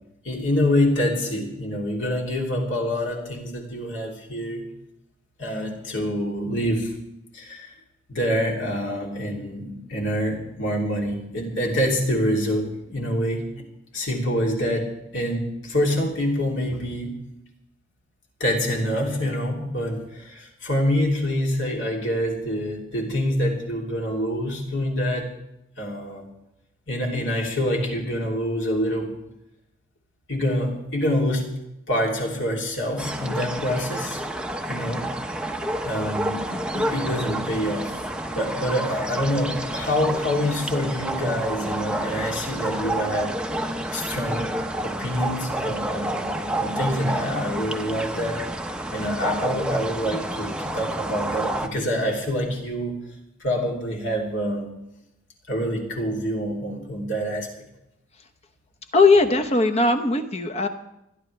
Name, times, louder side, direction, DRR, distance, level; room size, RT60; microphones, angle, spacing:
voice 1, 0.2-4.6 5.4-6.9 7.3-7.7 8.1-13.7 13.9-14.9 15.1-17.1 18.4-25.3 25.8-26.2 26.9-29.1 30.3-31.4 31.9-34.2 34.7-35.1 35.8-38.0 38.3-43.4 43.9-44.5 44.8-48.4 48.9-53.0 53.4-54.7 55.5-57.5, equal, 65° left, -1 dB, 3.0 m, -26 dB
sound 1, 33.0-51.7, right 1 dB, 5° right, 0.7 m, -29 dB
voice 2, 36.5-36.9 58.9-60.7, left 3 dB, 30° left, 7 dB, 1.0 m, -19 dB
29.5 x 10.5 x 3.4 m, 0.86 s
head